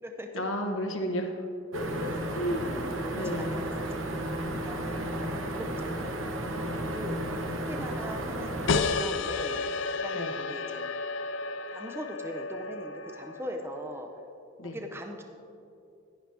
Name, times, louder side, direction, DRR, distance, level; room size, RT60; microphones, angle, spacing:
voice 1, 0.3-1.5 1.7-2.9 3.1-3.7 5.1-5.5 10.1-10.3 14.6-14.8, equal, 90° left, 3 dB, 1.3 m, -33 dB
sound 1, 1.7-8.7, right 1 dB, 80° right, 1.0 m, -33 dB
voice 2, 3.0-3.9 4.5-5.1 5.4-6.3 6.8-7.2 7.6-9.6 9.9-10.8 11.7-14.1 14.6-15.2, equal, 15° right, 3 dB, 0.7 m, -40 dB
sound 2, 8.7-13.9, left 4 dB, 70° left, 0.5 m, -32 dB
11.0 x 10.5 x 3.4 m, 2.6 s
head